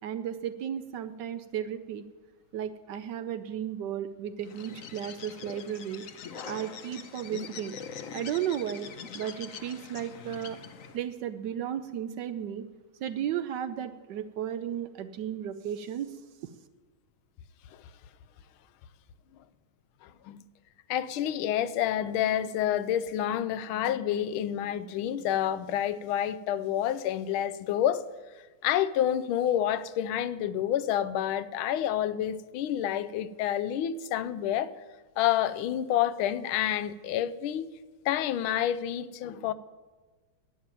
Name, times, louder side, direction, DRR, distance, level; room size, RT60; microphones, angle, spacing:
voice 1, 0.0-2.0 2.5-6.0 6.4-7.7 8.1-8.9 9.1-10.6 10.9-12.6 13.0-16.2, right 9 dB, 70° right, 1.1 m, -34 dB
Bird, 4.4-11.1, left 6 dB, 55° left, 1.0 m, -43 dB
voice 2, 20.0-20.4 20.9-28.0 28.6-34.7 35.2-37.7 38.0-39.5, left 11 dB, 85° left, 1.4 m, -28 dB
11.0 x 9.0 x 8.9 m
omnidirectional pair, 2.2 m